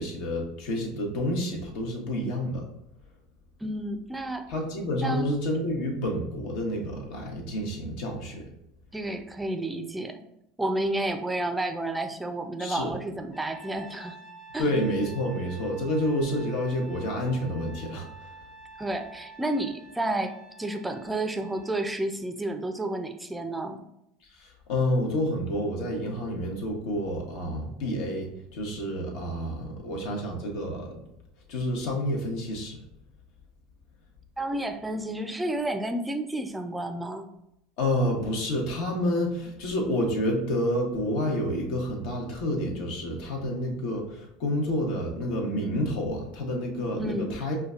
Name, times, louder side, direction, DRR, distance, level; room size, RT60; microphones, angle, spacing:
voice 1, 0.0-2.6 4.5-8.5 12.6-12.9 14.6-18.3 24.3-30.9 31.5-32.8 37.8-47.5, left 1 dB, 65° left, 0 dB, 1.0 m, -29 dB
voice 2, 3.6-4.5 5.0-5.3 8.9-10.2 10.6-14.2 14.5-14.7 18.8-23.8 34.4-37.3 47.0-47.3, right 1 dB, 10° right, 6 dB, 0.4 m, -31 dB
Trumpet, 13.3-21.9, right 3 dB, 40° left, 0.7 m, -48 dB
4.9 x 2.2 x 2.4 m, 0.81 s
hypercardioid pair, 100°, 0 cm